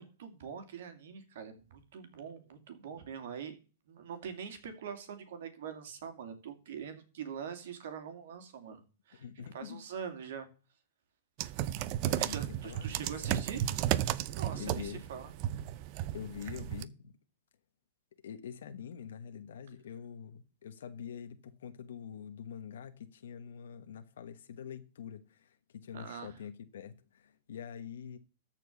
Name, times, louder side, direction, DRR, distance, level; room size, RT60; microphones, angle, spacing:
voice 1, 0.0-3.6 3.9-10.5 12.1-13.6 14.3-15.3 25.9-26.4, right 7 dB, 70° right, 2.4 m, -44 dB
voice 2, 9.1-9.8 12.0-13.8 14.6-15.0 16.1-17.2 18.2-28.2, left 8 dB, 80° left, 1.2 m, -45 dB
sound 1, 11.4-16.8, right 13 dB, 45° right, 0.6 m, -34 dB
13.5 x 4.6 x 7.1 m
hypercardioid pair, 135°, 0 cm